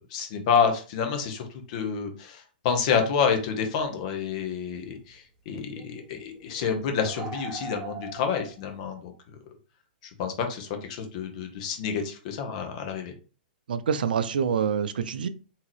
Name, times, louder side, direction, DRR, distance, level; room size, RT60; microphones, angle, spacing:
voice 1, 0.1-9.1 10.0-13.1, left 6 dB, 50° left, 5 dB, 1.0 m, -28 dB
sound 1, 3.4-3.5 3.8-4.0 4.9-5.1 5.5-8.8, right 4 dB, 10° right, 0.7 m, -41 dB
voice 2, 13.7-15.3, right 7 dB, 70° right, 12 dB, 0.4 m, -26 dB
3.7 x 2.8 x 3.1 m, 0.35 s
hypercardioid pair, 125°, 5 cm